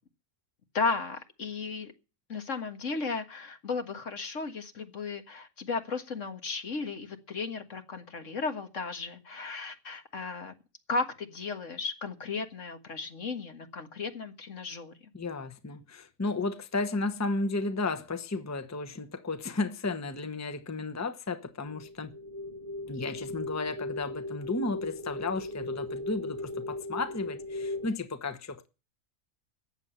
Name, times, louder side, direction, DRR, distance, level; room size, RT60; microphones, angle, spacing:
voice 1, 0.7-1.9 2.3-10.5 10.9-14.9, left 4 dB, 70° left, 2.0 m, -35 dB
voice 2, 15.1-22.2 22.9-28.7, left 3 dB, 15° left, 0.9 m, -33 dB
sound 1, 21.6-27.9, left 2 dB, 35° right, 0.8 m, -37 dB
14.0 x 9.0 x 8.2 m
omnidirectional pair, 1.4 m